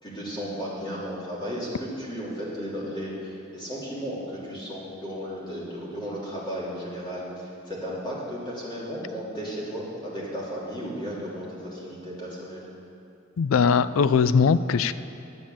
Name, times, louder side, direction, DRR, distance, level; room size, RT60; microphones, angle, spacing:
voice 1, 0.0-12.6, equal, 25° left, -6 dB, 3.1 m, -34 dB
voice 2, 13.4-14.9, left 5 dB, 80° left, 15 dB, 0.4 m, -20 dB
11.0 x 8.6 x 7.6 m, 2.6 s
head